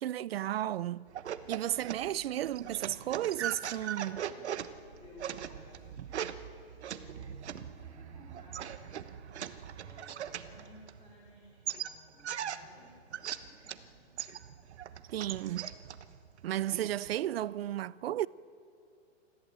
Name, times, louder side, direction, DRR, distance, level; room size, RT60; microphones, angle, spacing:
voice 1, 0.0-1.1 1.5-4.2 15.1-15.7 16.4-18.3, right 12 dB, 60° right, 0.6 m, -33 dB
sound 1, 1.1-11.3 11.7-13.9 14.2-17.1, right 9 dB, 75° right, 1.2 m, -40 dB
Bass guitar, 1.7-11.4, equal, 10° right, 5.2 m, -65 dB
voice 2, 4.0-4.5 5.0-6.1 6.8-9.1 9.8-14.1, left 1 dB, 15° left, 3.4 m, -56 dB
24.5 x 14.5 x 8.7 m
hypercardioid pair, 165°, 33 cm